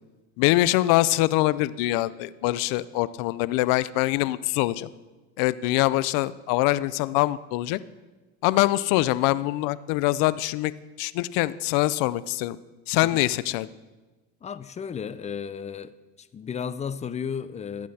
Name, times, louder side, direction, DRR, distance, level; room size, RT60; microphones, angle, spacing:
voice 1, 0.4-4.9 5.4-7.8 8.4-10.7 11.0-12.6 12.9-13.7, left 17 dB, 70° left, 18 dB, 0.6 m, -24 dB
voice 2, 14.4-15.9 16.2-17.9, left 7 dB, 20° left, 14 dB, 0.5 m, -33 dB
15.5 x 8.5 x 4.2 m, 1.2 s
supercardioid pair, 110°, 34 cm